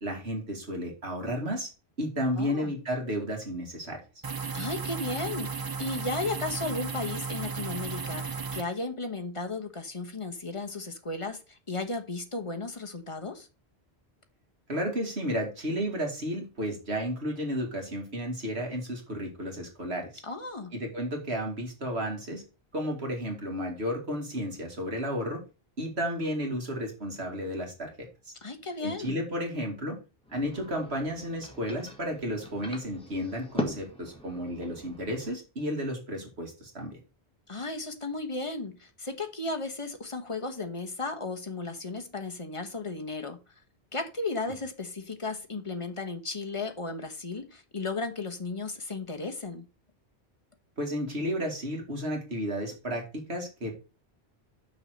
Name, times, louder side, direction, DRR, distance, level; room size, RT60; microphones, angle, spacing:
voice 1, 0.0-1.7 2.0-4.0 14.7-20.2 20.7-22.4 22.7-25.4 25.8-28.3 28.8-30.0 30.3-37.0 50.8-53.7, equal, 85° right, 2.7 m, -32 dB
voice 2, 2.4-2.7 4.5-13.5 20.2-20.7 28.4-29.2 37.5-43.4 43.9-49.6, left 3 dB, 30° left, 1.2 m, -35 dB
sound 1, 4.2-8.6, right 5 dB, 35° right, 0.4 m, -34 dB
sound 2, 30.2-35.3, left 1 dB, 5° left, 1.9 m, -40 dB
6.3 x 5.7 x 6.4 m
omnidirectional pair, 1.1 m